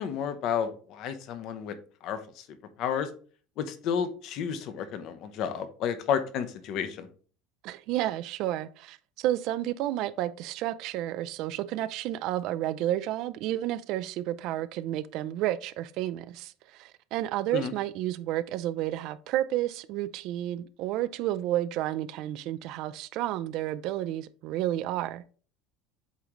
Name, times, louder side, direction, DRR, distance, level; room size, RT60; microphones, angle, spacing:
voice 1, 0.0-1.8 2.0-2.5 2.8-3.1 3.6-7.1 17.5-17.7, left 8 dB, 45° left, 0.7 m, -31 dB
voice 2, 7.6-25.2, right 13 dB, 45° right, 0.3 m, -31 dB
8.1 x 3.7 x 3.1 m
cardioid pair, 170°, 0 cm